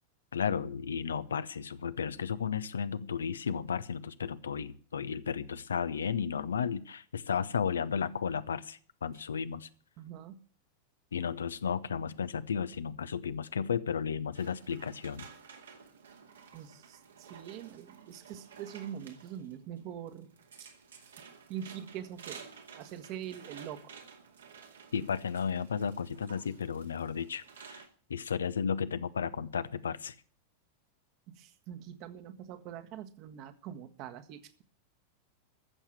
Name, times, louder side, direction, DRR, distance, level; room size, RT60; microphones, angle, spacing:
voice 1, 0.3-9.7 11.1-15.3 24.9-27.8 28.1-30.1, left 7 dB, 70° left, 15 dB, 0.7 m, -33 dB
voice 2, 10.0-10.4 16.5-20.3 20.6-20.7 21.5-23.9 31.3-34.6, right 10 dB, 40° right, 8 dB, 1.5 m, -44 dB
sound 1, 14.3-27.9, right 6 dB, 65° right, 2.3 m, -53 dB
14.0 x 7.3 x 8.8 m, 0.44 s
figure-of-eight pair, 90°, 0 cm